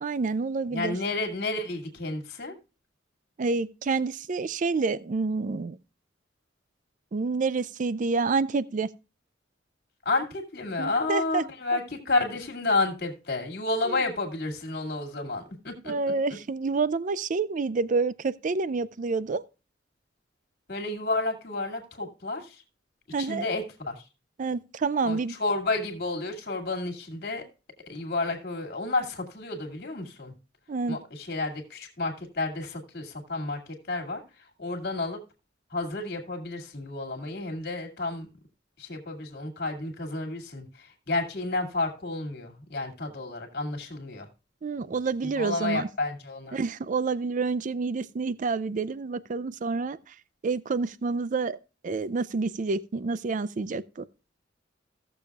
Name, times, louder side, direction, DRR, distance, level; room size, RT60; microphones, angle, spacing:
voice 1, 0.0-1.0 3.4-5.8 7.1-8.9 10.8-11.4 13.9-14.0 15.9-19.4 23.1-23.4 24.4-25.3 30.7-31.0 44.6-45.9 46.5-50.1 50.4-51.6 51.8-54.1, right 4 dB, 45° right, 0.4 m, -28 dB
voice 2, 0.7-2.6 10.0-15.9 20.7-22.6 23.2-24.0 25.0-27.5 27.9-30.3 30.9-35.2 35.7-38.3 38.8-44.3 45.4-46.6, left 2 dB, 55° left, 2.4 m, -31 dB
16.5 x 7.0 x 2.4 m
head